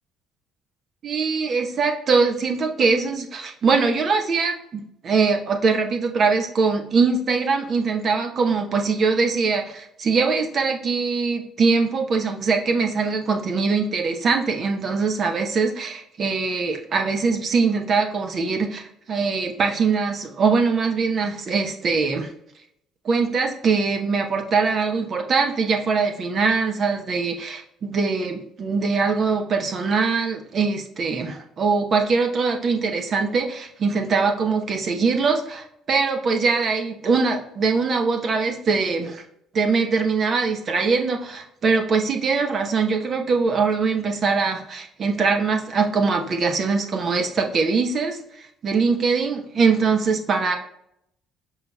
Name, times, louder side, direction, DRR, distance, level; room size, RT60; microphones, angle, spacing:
voice 1, 1.0-22.3 23.0-39.2 39.5-50.6, right 4 dB, 50° right, 3 dB, 0.8 m, -22 dB
5.5 x 4.1 x 2.2 m, 0.75 s
hypercardioid pair, 55°, 0 cm